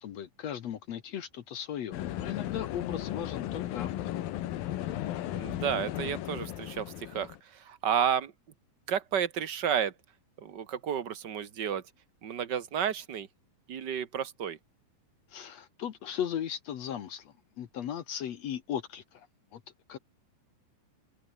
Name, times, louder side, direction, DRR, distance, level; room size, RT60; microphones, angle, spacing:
voice 1, 0.0-4.2 15.3-19.3 19.5-19.6 19.9-20.0, left 9 dB, 60° left, 2.0 m, -37 dB
sound 1, 1.9-7.4, left 13 dB, 75° left, 3.0 m, -35 dB
voice 2, 5.3-8.3 8.9-9.9 10.4-11.8 12.2-13.3 13.7-14.6, right 8 dB, 70° right, 1.0 m, -31 dB
omnidirectional pair, 4.2 m